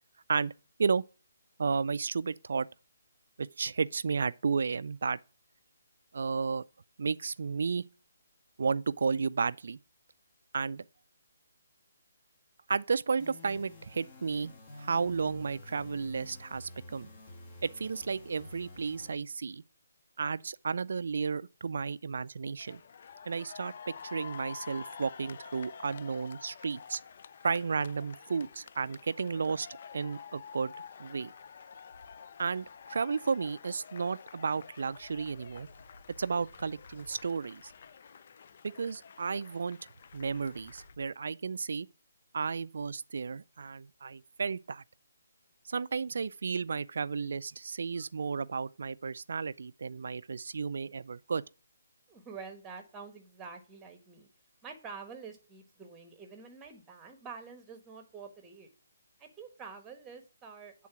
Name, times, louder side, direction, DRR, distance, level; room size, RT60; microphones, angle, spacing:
voice 1, 1.6-2.7 3.4-5.2 6.1-6.6 7.0-7.8 8.6-9.8 10.5-10.8 12.7-14.5 14.8-17.1 17.6-19.6 20.2-22.8 23.3-23.7 24.0-27.0 27.4-29.7 29.9-30.7 31.0-31.3 32.4-35.7 36.2-37.7 38.6-39.8 40.1-41.9 42.3-44.8 45.7-51.4, right 5 dB, 65° right, 0.3 m, -33 dB
sound 1, 13.2-19.1, left 2 dB, 30° left, 1.6 m, -49 dB
sound 2, 22.6-41.0, left 6 dB, 50° left, 0.4 m, -49 dB
sound 3, 31.9-32.9 34.9-37.9 40.0-41.1, left 1 dB, 80° left, 1.9 m, -58 dB
voice 2, 52.1-54.3 54.6-58.7 59.2-60.7, right 5 dB, 15° right, 1.1 m, -47 dB
8.5 x 3.8 x 5.8 m
hypercardioid pair, 155°, 0 cm